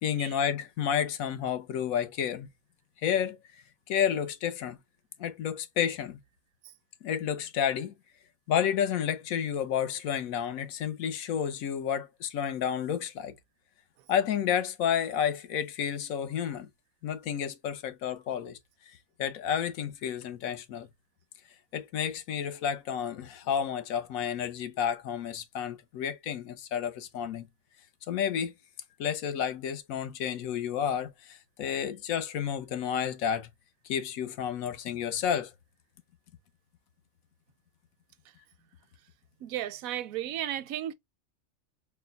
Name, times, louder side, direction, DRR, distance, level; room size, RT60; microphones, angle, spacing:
voice 1, 0.0-2.5 3.0-3.4 3.9-4.8 5.2-6.2 7.0-7.9 8.5-13.3 14.1-16.7 17.0-18.6 19.2-20.9 21.7-27.5 28.1-28.5 29.0-33.5 33.8-35.5, left 8 dB, 85° left, 1.1 m, -30 dB
voice 2, 39.4-40.9, right 12 dB, 85° right, 1.0 m, -34 dB
4.2 x 2.1 x 3.9 m
omnidirectional pair, 1.4 m